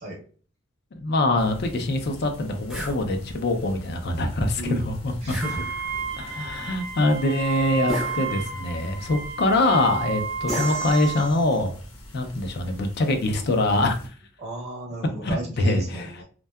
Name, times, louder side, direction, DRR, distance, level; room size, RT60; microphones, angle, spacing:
voice 1, 1.0-5.4 6.2-11.7 12.1-14.0 15.2-16.1, left 2 dB, 55° left, 6 dB, 0.4 m, -24 dB
sound 1, 1.4-14.1, left 1 dB, 85° left, 0.8 m, -43 dB
sound 2, 2.7-3.0 5.3-6.1 7.9-8.7 10.5-11.6, left 1 dB, ahead, 0.5 m, -34 dB
voice 2, 5.2-5.7 14.4-16.2, right 1 dB, 50° right, -3 dB, 0.7 m, -34 dB
Wind instrument woodwind instrument, 5.4-11.3, right 6 dB, 85° right, 0.5 m, -32 dB
2.7 x 2.2 x 2.2 m, 0.42 s
head